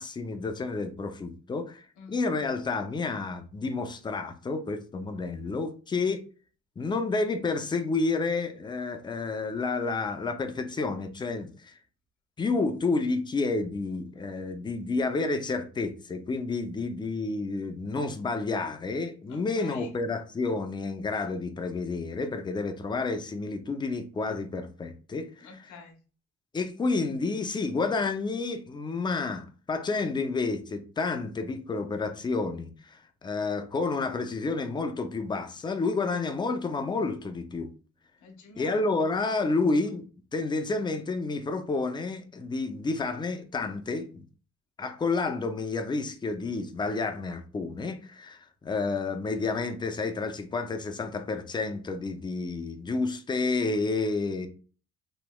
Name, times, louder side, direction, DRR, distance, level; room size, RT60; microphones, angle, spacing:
voice 1, 0.0-6.2 6.8-11.8 12.4-25.5 26.5-37.7 38.6-40.0 40.3-44.2 44.8-54.5, left 3 dB, 15° left, 0.4 m, -30 dB
voice 2, 19.3-19.9 25.4-26.0 38.2-38.9 39.4-39.6, left 4 dB, 80° left, 0.9 m, -48 dB
3.1 x 2.9 x 2.2 m
cardioid pair, 110°, 30 cm